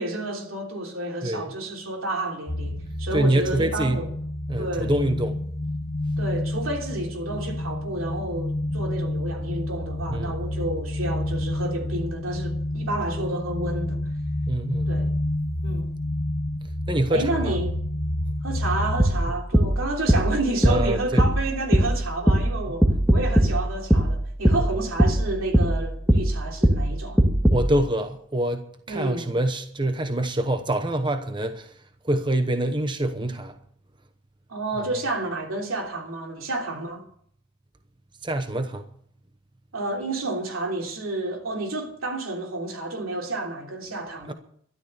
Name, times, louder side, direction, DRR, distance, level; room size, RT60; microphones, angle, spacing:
voice 1, 0.0-4.1 4.6-4.9 6.2-14.0 14.9-15.1 15.6-15.9 17.1-17.7 18.4-27.2 28.9-29.3 34.5-37.0 39.7-44.3, right 2 dB, 90° right, 3.2 m, -30 dB
sound 1, 2.5-19.2, left 1 dB, 60° left, 2.4 m, -29 dB
voice 2, 3.1-4.0 4.5-5.4 10.1-10.3 14.5-14.9 16.9-17.6 20.6-21.2 27.5-31.7 32.0-33.6 38.2-38.9 44.3-44.4, right 1 dB, 25° right, 1.0 m, -25 dB
sound 2, 19.0-27.7, right 1 dB, 5° right, 1.8 m, -21 dB
13.0 x 12.5 x 6.7 m
head